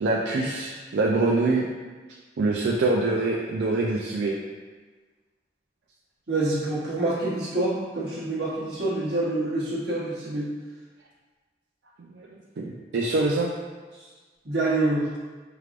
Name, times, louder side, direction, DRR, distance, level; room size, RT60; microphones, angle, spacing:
voice 1, 0.0-1.7 2.4-4.4 12.1-12.3 12.6-13.5, right 2 dB, 90° right, -3 dB, 0.4 m, -24 dB
voice 2, 6.3-10.5 13.9-14.0 14.4-15.1, right 2 dB, 65° right, -8 dB, 1.1 m, -26 dB
4.7 x 3.3 x 2.4 m, 1.4 s
head